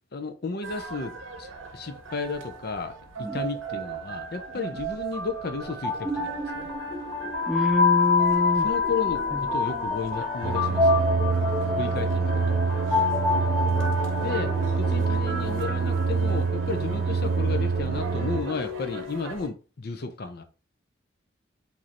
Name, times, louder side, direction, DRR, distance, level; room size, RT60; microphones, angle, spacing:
voice 1, 0.1-1.5 1.7-2.9 3.2-6.7 8.6-11.0 11.8-12.6 14.2-14.5 14.8-20.4, left 4 dB, 50° left, 0.6 m, -33 dB
sound 1, 0.6-19.5, right 3 dB, 85° right, 0.7 m, -39 dB
sound 2, 5.6-16.7, left 4 dB, 15° left, 1.3 m, -27 dB
voice 2, 7.5-8.7 9.3-9.4 16.9-17.0, left 1 dB, 5° right, 0.3 m, -26 dB
sound 3, 10.4-18.4, right 5 dB, 50° right, 0.6 m, -26 dB
5.1 x 2.7 x 2.9 m
head